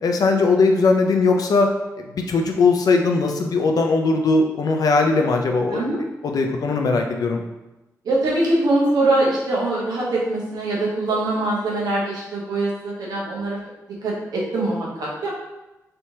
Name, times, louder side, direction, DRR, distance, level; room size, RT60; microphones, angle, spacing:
voice 1, 0.0-1.7 2.1-5.8 6.2-7.4, left 3 dB, 70° left, 3 dB, 0.5 m, -19 dB
voice 2, 8.0-13.6 14.0-15.3, right 2 dB, 80° right, -5 dB, 1.0 m, -23 dB
3.3 x 2.8 x 2.8 m, 1.0 s
supercardioid pair, 50°, 7 cm